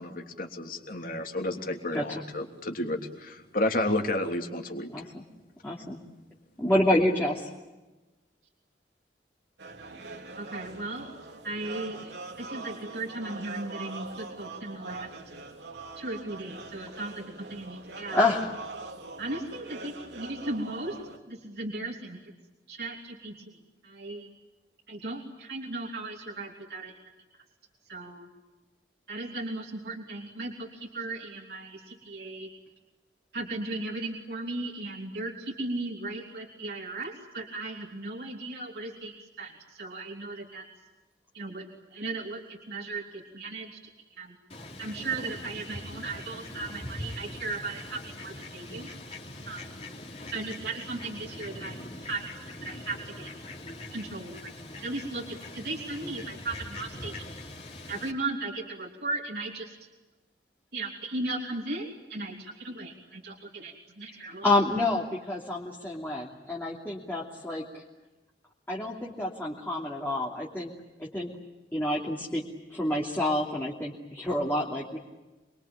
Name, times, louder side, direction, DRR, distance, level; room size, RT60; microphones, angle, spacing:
voice 1, 0.0-4.9, left 1 dB, 50° left, 3 dB, 3.2 m, -31 dB
voice 2, 4.9-5.2 5.6-6.0 6.6-7.5 18.1-18.4 64.4-67.8 68.7-70.7 71.0-71.3 71.7-72.4 72.7-75.0, left 1 dB, 10° left, -4 dB, 2.9 m, -28 dB
sound 1, 9.6-21.2, right 3 dB, 80° right, 3.1 m, -43 dB
voice 3, 10.3-11.1 11.4-15.1 16.0-18.2 19.2-21.0 21.3-22.3 22.7-24.3 24.9-27.0 27.8-28.3 29.1-32.5 33.3-40.6 41.3-41.7 41.9-43.9 44.2-44.4 44.8-48.9 49.5-49.8 50.3-53.3 53.9-54.4 54.8-57.1 57.9-59.7 60.7-64.4, right 2 dB, 60° right, -1 dB, 3.1 m, -37 dB
Fowl, 44.5-58.1, left 1 dB, 35° left, 3.4 m, -42 dB
27.0 x 23.0 x 8.7 m, 1.1 s
head